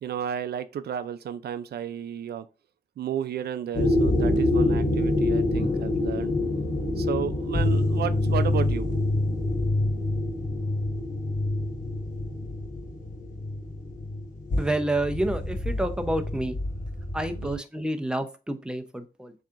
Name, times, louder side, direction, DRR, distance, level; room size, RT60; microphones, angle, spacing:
voice 1, 0.0-2.5 3.0-6.3 7.0-8.9 17.4-17.6, right 9 dB, 85° right, 0.4 m, -32 dB
sound 1, 3.7-17.6, left 2 dB, 50° left, 1.1 m, -26 dB
voice 2, 14.6-16.6 17.1-19.3, right 1 dB, 5° right, 0.7 m, -29 dB
7.2 x 2.8 x 2.4 m
cardioid pair, 80°, 16 cm